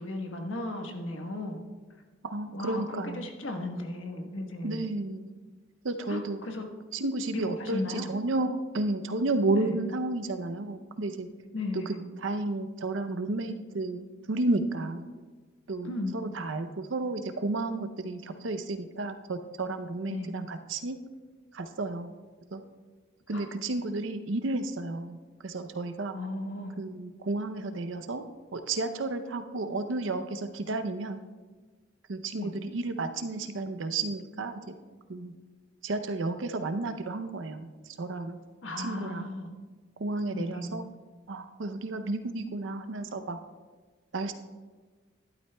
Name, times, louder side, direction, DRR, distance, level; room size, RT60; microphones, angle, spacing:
voice 1, 0.0-1.6 2.5-4.9 6.1-6.6 7.3-8.1 9.6-9.8 11.5-12.0 15.8-16.2 20.1-20.3 23.3-23.5 26.1-26.8 32.4-32.5 38.6-39.5 40.3-40.8, left 1 dB, 85° left, 3 dB, 1.3 m, -35 dB
voice 2, 2.2-3.3 4.6-5.3 5.8-6.4 6.9-11.3 11.9-15.1 15.7-21.0 21.5-22.1 22.5-22.6 23.3-25.2 25.4-26.1 26.8-28.2 28.5-31.2 32.1-34.7 35.1-35.3 35.8-37.7 38.0-38.4 38.8-39.3 40.0-40.8 41.3-43.4 44.1-44.3, right 2 dB, 75° right, 9 dB, 0.6 m, -32 dB
12.5 x 11.5 x 2.3 m, 1.4 s
head